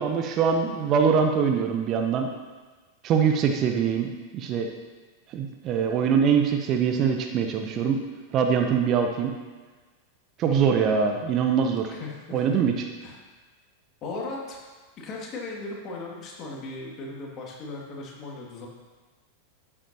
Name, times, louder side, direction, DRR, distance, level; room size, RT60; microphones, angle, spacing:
voice 1, 0.0-2.3 3.0-4.7 5.3-8.0 8.3-9.3 10.4-11.9 12.3-12.7, right 6 dB, 35° right, 4 dB, 0.8 m, -23 dB
voice 2, 10.5-10.8 11.9-12.6 13.0-13.2 14.0-14.6 15.0-18.7, left 3 dB, 35° left, -2 dB, 2.3 m, -37 dB
12.5 x 8.7 x 2.9 m, 1.3 s
figure-of-eight pair, 90°, 0 cm